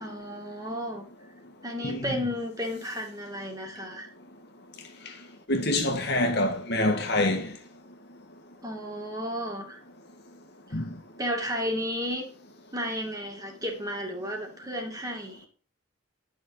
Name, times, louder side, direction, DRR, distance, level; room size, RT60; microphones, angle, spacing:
voice 1, 0.0-1.1 1.6-4.1 8.6-9.8 11.2-12.3 12.7-15.5, equal, 15° right, 2.4 m, -33 dB
voice 2, 5.5-7.5 10.7-10.9, left 1 dB, 50° left, 1.7 m, -25 dB
11.0 x 6.4 x 5.2 m
head